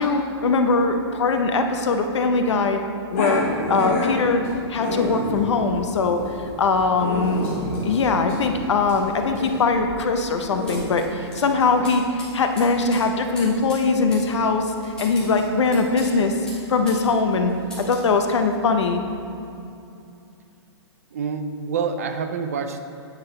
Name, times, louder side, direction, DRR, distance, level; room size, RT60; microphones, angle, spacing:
voice 1, 0.0-2.8 3.1-3.4 3.7-4.4 4.7-6.2 6.6-7.4 7.8-14.7 15.0-16.3 16.7-17.5 17.8-19.0, left 4 dB, 85° left, 5 dB, 0.8 m, -21 dB
Growling, 3.1-10.8, left 2 dB, 30° left, 1.6 m, -29 dB
sound 1, 10.7-17.1 17.3-18.1, left 1 dB, 5° left, 1.3 m, -42 dB
voice 2, 21.1-22.8, right 5 dB, 35° right, 7 dB, 0.4 m, -27 dB
9.0 x 5.9 x 3.3 m, 2.6 s
hypercardioid pair, 180°, 15 cm